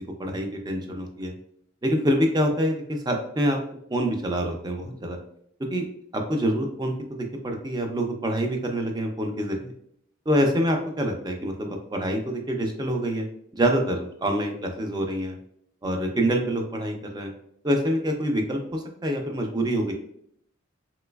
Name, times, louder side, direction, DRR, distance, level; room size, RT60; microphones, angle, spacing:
voice 1, 0.2-1.3 1.8-3.6 3.9-5.2 5.7-5.9 6.1-6.9 7.4-9.7 10.3-13.2 13.5-15.4 15.8-17.3 17.6-19.9, equal, 20° right, 3 dB, 0.4 m, -26 dB
3.1 x 2.9 x 2.3 m, 0.69 s
head